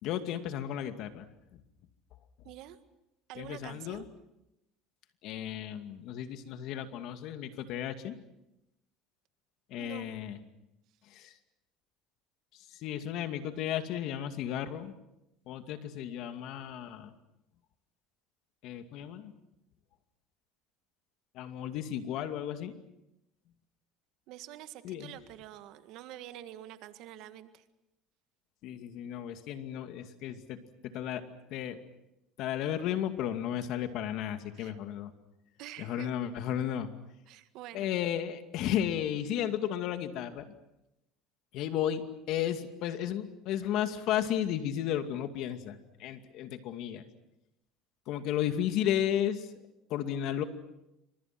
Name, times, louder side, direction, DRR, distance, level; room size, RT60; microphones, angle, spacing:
voice 1, 0.0-1.3 3.4-4.0 5.2-8.2 9.7-10.4 11.1-11.3 12.7-14.9 15.5-17.1 18.6-19.3 21.3-22.8 24.8-25.1 28.6-31.8 32.4-35.1 35.8-36.9 37.7-40.5 41.5-47.0 48.1-49.5 49.9-50.4, left 10 dB, 60° left, 8 dB, 2.3 m, -34 dB
voice 2, 2.4-2.8 3.3-4.1 9.8-10.3 24.3-27.6 34.5-34.8 35.6-36.2 37.3-37.9, right 13 dB, 65° right, 10 dB, 1.8 m, -47 dB
28.5 x 25.5 x 6.1 m, 0.88 s
supercardioid pair, 115°, 0 cm